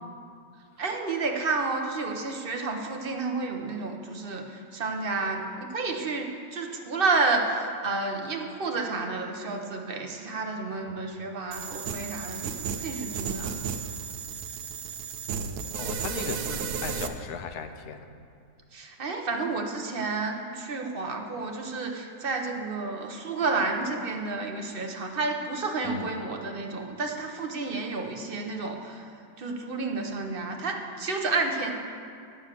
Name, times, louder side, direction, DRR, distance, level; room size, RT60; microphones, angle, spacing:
voice 1, 0.8-13.6 18.7-29.0 29.4-31.7, right 3 dB, 40° right, 3 dB, 0.9 m, -30 dB
voice 2, 10.9-11.2 15.7-18.1 25.8-26.1, left 6 dB, 80° left, 8 dB, 1.2 m, -37 dB
sound 1, 11.5-17.1, right 7 dB, 75° right, 1.2 m, -34 dB
10.0 x 6.6 x 7.5 m, 2.4 s
omnidirectional pair, 1.7 m